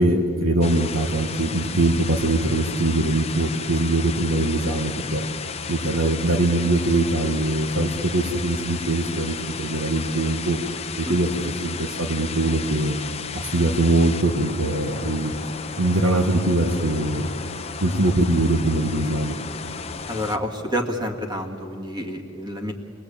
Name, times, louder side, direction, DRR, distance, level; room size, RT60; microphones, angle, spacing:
voice 1, 0.0-5.2 5.7-10.6 11.0-13.0 13.3-15.3 15.8-17.3 17.8-19.3, right 2 dB, 70° right, 3 dB, 1.7 m, -22 dB
sound 1, 0.6-20.4, left 6 dB, 30° left, 0.9 m, -34 dB
voice 2, 20.1-22.7, equal, 20° right, 3 dB, 2.1 m, -28 dB
28.0 x 20.5 x 8.7 m, 2.6 s
head